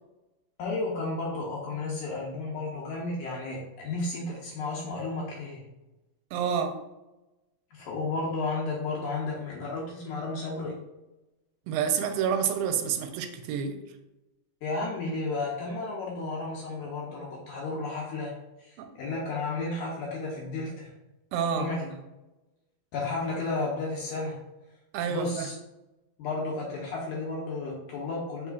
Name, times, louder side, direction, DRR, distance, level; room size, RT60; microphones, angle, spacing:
voice 1, 0.6-5.6 7.7-10.7 14.6-20.9 21.5-21.9 22.9-24.4 25.1-25.5 26.2-28.5, left 3 dB, 75° left, -3 dB, 1.9 m, -33 dB
voice 2, 6.3-6.8 11.7-13.8 18.8-18.9 21.3-21.7 24.9-25.5, right 7 dB, 85° right, 7 dB, 2.3 m, -28 dB
5.2 x 4.1 x 2.3 m, 0.99 s
omnidirectional pair, 4.1 m